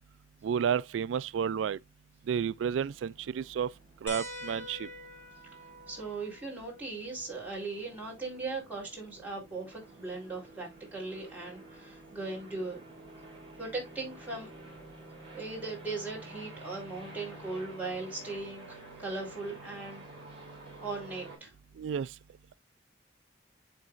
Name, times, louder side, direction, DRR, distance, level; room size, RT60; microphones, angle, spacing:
voice 1, 0.4-1.8 2.3-3.7 4.0-4.9 21.8-22.1, right 7 dB, 80° right, 0.3 m, -31 dB
sound 1, 2.6-21.4, right 2 dB, 30° right, 4.6 m, -51 dB
sound 2, 4.1-9.1 10.7-10.8 12.4-12.5, equal, 15° left, 2.0 m, -47 dB
voice 2, 5.9-12.8 13.6-14.5 15.3-20.0 20.8-21.5, right 3 dB, 10° right, 3.8 m, -38 dB
11.0 x 3.9 x 2.5 m
head